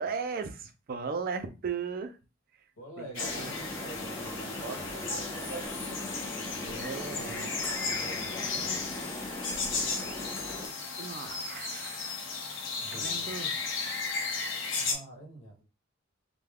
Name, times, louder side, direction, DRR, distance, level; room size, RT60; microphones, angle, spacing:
voice 1, 0.0-2.2 3.0-3.5 4.6-4.8 5.1-5.7 6.3-7.8 11.0-12.2 12.5-13.5 13.8-13.9, right 5 dB, 45° right, 7 dB, 0.4 m, -38 dB
voice 2, 2.8-5.1 6.3-9.0 12.8-13.3 14.7-15.6, equal, 85° left, -1 dB, 1.0 m, -48 dB
sound 1, 3.1-14.9, left 4 dB, 65° left, 0.7 m, -35 dB
sound 2, 3.2-10.7, left 1 dB, 10° left, 0.5 m, -39 dB
2.3 x 2.1 x 3.3 m, 0.29 s
head